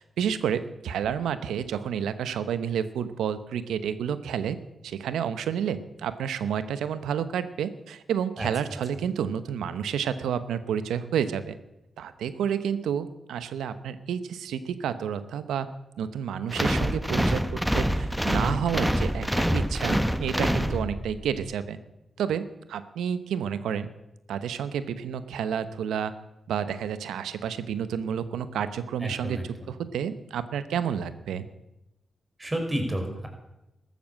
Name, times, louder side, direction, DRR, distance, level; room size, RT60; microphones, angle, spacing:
voice 1, 0.0-4.6 4.8-11.6 12.0-15.7 16.0-21.8 22.2-23.9 24.3-26.1 26.5-29.4 29.7-31.5, right 8 dB, 85° right, 13 dB, 0.9 m, -30 dB
sound 1, 16.5-21.2, equal, 5° right, 1.2 m, -26 dB
voice 2, 29.0-29.7 32.4-33.3, right 1 dB, 25° right, 4 dB, 5.5 m, -31 dB
13.5 x 13.0 x 7.6 m, 0.91 s
supercardioid pair, 50°, 0 cm